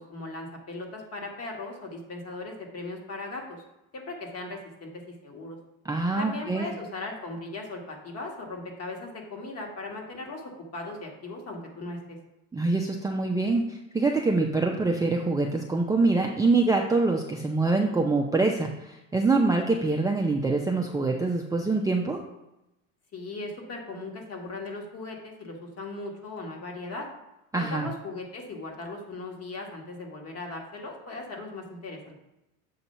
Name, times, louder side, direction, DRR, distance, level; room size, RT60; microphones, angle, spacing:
voice 1, 0.0-3.6 3.9-5.6 6.2-10.4 10.7-12.2 23.1-27.1 27.5-32.1, left 2 dB, 40° left, 1 dB, 1.6 m, -38 dB
voice 2, 5.8-6.7 12.5-22.2 27.5-27.9, right 3 dB, 10° right, 0 dB, 0.4 m, -25 dB
7.2 x 2.8 x 5.4 m, 0.92 s
supercardioid pair, 90°, 39 cm